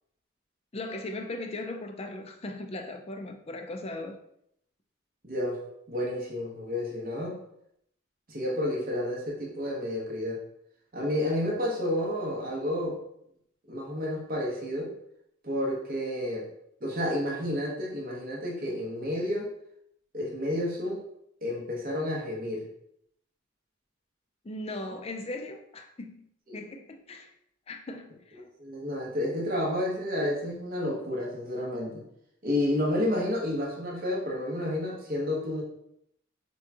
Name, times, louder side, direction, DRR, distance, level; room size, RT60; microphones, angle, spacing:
voice 1, 0.7-4.2 24.4-26.2 26.5-27.3 27.7-28.4, left 2 dB, 30° left, 4 dB, 0.4 m, -38 dB
voice 2, 5.2-5.6 5.9-7.4 8.3-10.4 10.9-13.0 13.7-14.9 15.4-16.5 16.8-19.5 20.1-21.0 21.4-22.7 26.5-26.6 28.6-32.0 32.4-35.6, left 1 dB, 45° right, -2 dB, 1.0 m, -30 dB
6.2 x 2.3 x 2.7 m, 0.75 s
head